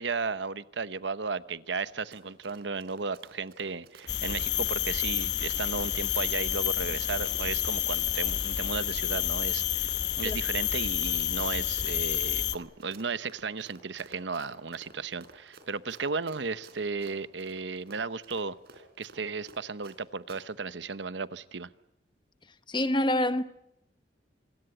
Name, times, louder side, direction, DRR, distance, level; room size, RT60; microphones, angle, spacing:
voice 1, 0.0-9.9 10.2-18.6 19.0-21.7, right 4 dB, 80° right, 0.9 m, -35 dB
Run, 1.8-20.0 20.3-20.4, right 2 dB, 60° right, 4.3 m, -53 dB
sound 1, 4.1-12.6, left 11 dB, 70° left, 1.1 m, -29 dB
voice 2, 22.7-23.4, left 1 dB, 25° left, 1.1 m, -26 dB
26.5 x 22.0 x 7.9 m
head